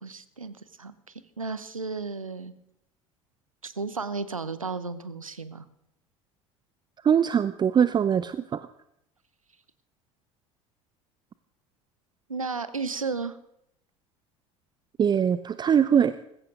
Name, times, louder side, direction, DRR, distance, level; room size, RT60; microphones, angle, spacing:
voice 1, 0.0-2.5 3.6-5.6 12.3-13.4, right 4 dB, 85° right, 14 dB, 0.9 m, -34 dB
voice 2, 7.0-8.7 15.0-16.1, right 8 dB, 25° right, 14 dB, 0.6 m, -22 dB
20.0 x 16.0 x 3.9 m, 0.78 s
figure-of-eight pair, 65°, 17 cm